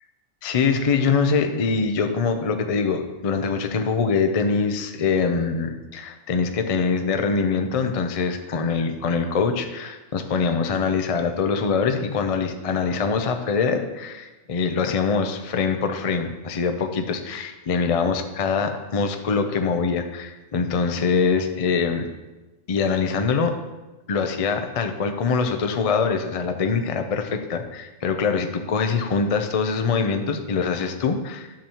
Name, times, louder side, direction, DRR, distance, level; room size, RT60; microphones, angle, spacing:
voice 1, 0.4-22.1 22.7-23.5 24.1-31.5, left 5 dB, 45° left, 6 dB, 0.4 m, -23 dB
10.0 x 7.0 x 2.9 m, 1.1 s
omnidirectional pair, 1.4 m